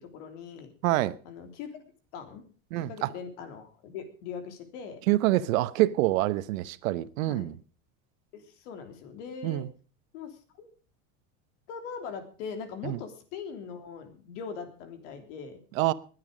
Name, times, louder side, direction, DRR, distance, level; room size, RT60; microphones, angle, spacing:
voice 1, 0.0-0.7 1.2-1.7 2.1-2.4 2.8-5.0 7.2-7.5 8.3-9.6 10.1-10.7 11.7-15.6, left 6 dB, 65° left, 3.3 m, -41 dB
voice 2, 0.8-1.2 2.7-3.1 5.1-7.6 9.4-9.7 12.8-13.0 15.7-15.9, right 16 dB, 85° right, 1.1 m, -26 dB
21.0 x 9.7 x 5.1 m
supercardioid pair, 175°, 40 cm